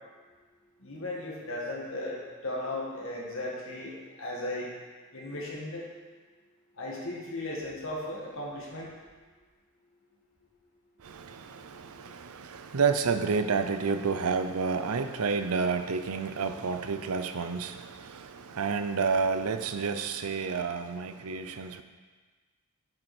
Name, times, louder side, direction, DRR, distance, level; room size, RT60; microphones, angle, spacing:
voice 1, 0.8-4.7 5.1-5.8 6.8-8.9, left 1 dB, 65° left, -3 dB, 1.9 m, -36 dB
voice 2, 11.0-21.8, right 5 dB, 85° right, 9 dB, 0.6 m, -30 dB
8.2 x 8.0 x 4.4 m, 1.4 s
head